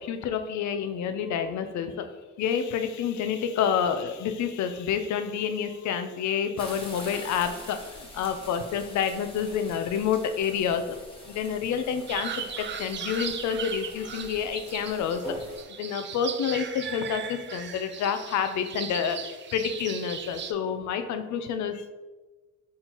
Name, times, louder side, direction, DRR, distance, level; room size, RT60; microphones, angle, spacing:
voice 1, 0.0-2.1 2.4-11.0 11.3-15.4 15.8-21.8, left 7 dB, 70° left, 8 dB, 0.5 m, -29 dB
sound 1, 6.6-15.6, equal, 15° left, 1.3 m, -44 dB
sound 2, 12.1-20.5, right 8 dB, 40° right, 0.4 m, -38 dB
4.3 x 3.7 x 2.9 m, 1.2 s
cardioid pair, 90°, 30 cm